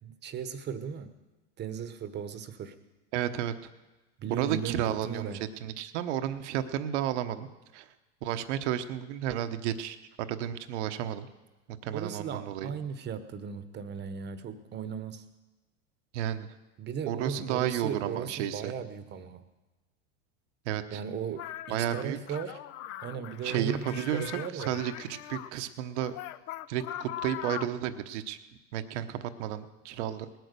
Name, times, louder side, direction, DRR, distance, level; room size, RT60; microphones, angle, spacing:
voice 1, 0.0-1.1 1.6-2.7 4.2-5.4 11.9-15.2 16.8-19.4 20.9-22.6 23.0-24.8 29.1-29.2, right 7 dB, 30° right, 11 dB, 1.1 m, -37 dB
voice 2, 3.1-3.5 4.3-5.3 5.6-7.5 7.7-7.9 8.2-11.3 11.8-12.7 16.1-16.6 17.1-18.7 20.6-21.0 21.7-22.4 23.4-26.1 26.7-28.4 28.7-30.3, right 10 dB, 70° right, 10 dB, 1.1 m, -32 dB
sound 1, 21.4-25.5 26.0-27.8, left 13 dB, 40° left, 0.6 m, -41 dB
19.0 x 9.2 x 6.8 m, 1.1 s
supercardioid pair, 125°, 36 cm